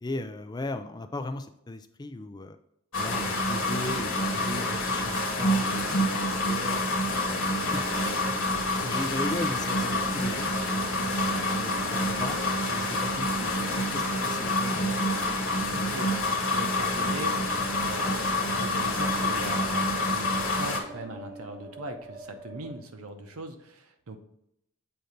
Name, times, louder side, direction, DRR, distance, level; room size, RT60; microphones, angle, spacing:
voice 1, 0.0-2.6 3.0-6.9 7.2-11.0 11.5-12.4 12.7-14.9, left 2 dB, 20° left, 8 dB, 0.3 m, -37 dB
sound 1, 2.9-20.8, left 1 dB, 65° left, 1.2 m, -27 dB
sound 2, 3.5-22.7, right 1 dB, 45° right, 2.0 m, -47 dB
voice 2, 15.7-24.2, right 2 dB, 90° right, 6 dB, 0.8 m, -41 dB
7.7 x 2.8 x 5.0 m, 0.78 s
head